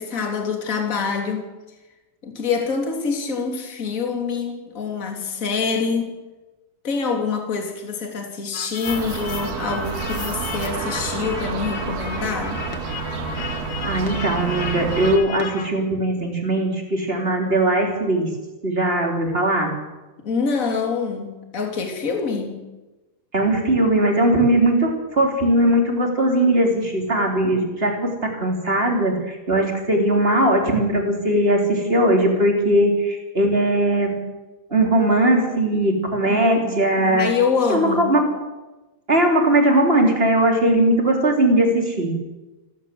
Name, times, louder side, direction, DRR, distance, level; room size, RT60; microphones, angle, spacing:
voice 1, 0.0-1.4 2.2-6.2 6.8-12.6 20.2-22.6 36.3-36.6 37.1-38.1, left 5 dB, 20° left, 3 dB, 3.0 m, -25 dB
sound 1, 8.5-15.7, left 6 dB, 45° left, 1.6 m, -34 dB
sound 2, 8.9-15.2, right 5 dB, 80° right, 4.0 m, -29 dB
voice 2, 13.8-18.3 18.6-19.7 23.3-34.2 34.7-37.3 37.7-38.3 39.1-42.1, right 1 dB, 15° right, 2 dB, 3.6 m, -19 dB
28.5 x 13.0 x 7.9 m, 1.1 s
omnidirectional pair, 4.4 m